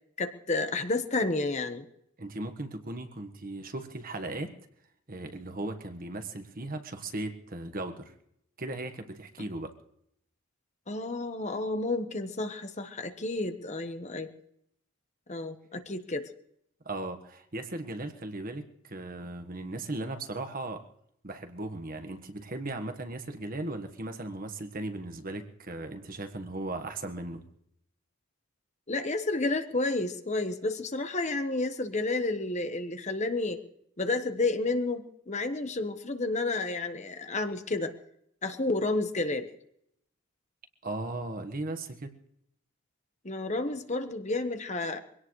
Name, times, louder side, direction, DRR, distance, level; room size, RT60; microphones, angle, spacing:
voice 1, 0.2-1.9 10.9-14.3 15.3-16.3 28.9-33.6 34.0-37.9 38.4-39.5 43.2-45.0, left 2 dB, 30° left, 8 dB, 1.1 m, -31 dB
voice 2, 2.2-4.5 5.1-8.1 8.6-9.7 16.8-20.9 21.2-27.4 40.8-42.1, right 2 dB, 40° right, 7 dB, 1.4 m, -37 dB
23.5 x 17.5 x 3.2 m, 0.72 s
head